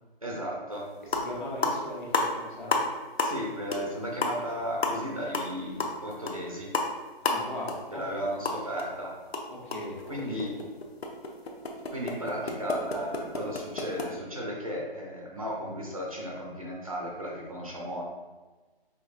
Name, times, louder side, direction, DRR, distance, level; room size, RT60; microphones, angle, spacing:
voice 1, 0.2-0.9 3.2-6.7 7.9-9.1 10.1-10.5 11.9-18.0, equal, 35° right, -2 dB, 0.6 m, -35 dB
sound 1, 0.7-0.8 1.0-1.3 1.6-2.9 3.2-3.4 3.7-3.9 4.2-8.9 9.2-14.1, left 3 dB, 85° left, 0.8 m, -31 dB
voice 2, 1.0-2.8 7.2-8.2 9.5-10.5, left 1 dB, 55° left, -5 dB, 1.5 m, -39 dB
5.2 x 3.6 x 2.5 m, 1.3 s
hypercardioid pair, 175°, 30 cm